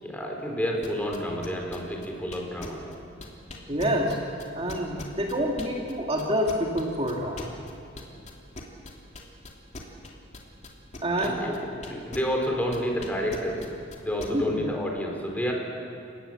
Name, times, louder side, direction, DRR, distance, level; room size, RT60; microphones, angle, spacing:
voice 1, 0.0-2.8 11.2-13.7 14.0-15.5, equal, 10° left, 0 dB, 4.3 m, -30 dB
sound 1, 0.8-5.9 6.2-12.5 12.7-14.3, left 2 dB, 40° left, 3.0 m, -41 dB
voice 2, 3.7-4.2 4.5-7.6 11.0-11.4 14.3-14.6, equal, 30° right, 0 dB, 2.0 m, -27 dB
29.5 x 18.0 x 7.7 m, 2.5 s
head